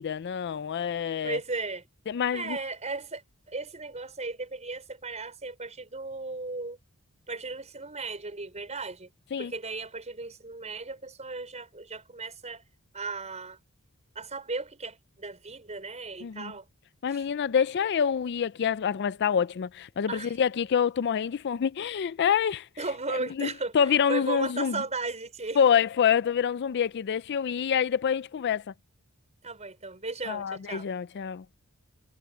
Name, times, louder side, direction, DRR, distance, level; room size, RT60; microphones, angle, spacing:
voice 1, 0.0-1.4 2.1-2.6 9.3-9.5 16.2-16.5 17.0-22.7 23.4-23.5 23.7-24.8 25.6-28.6 30.3-31.4, left 7 dB, 50° left, 0.4 m, -26 dB
voice 2, 1.2-1.9 2.3-6.8 7.3-9.1 9.4-12.6 12.9-13.6 14.2-16.7 17.1-17.3 20.1-20.4 22.8-25.6 29.4-30.9, right 3 dB, 30° right, 5.3 m, -36 dB
head